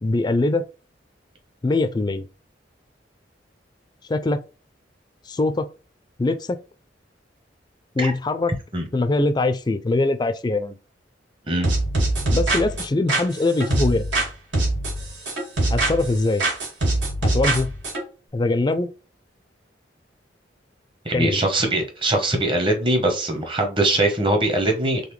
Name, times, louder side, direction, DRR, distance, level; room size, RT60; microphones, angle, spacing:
voice 1, 0.0-0.7 1.6-2.2 4.1-4.4 5.3-5.7 6.2-6.6 8.0-8.5 8.9-10.8 12.3-14.0 15.7-16.4 17.2-17.8 18.3-18.9 21.1-21.4, left 2 dB, 25° left, 0.4 m, -22 dB
sound 1, 11.6-14.3 14.5-16.1 16.4-18.0, right 2 dB, 80° right, 2.2 m, -23 dB
voice 2, 21.0-25.0, right 1 dB, 30° right, 1.0 m, -22 dB
3.9 x 3.3 x 3.2 m
head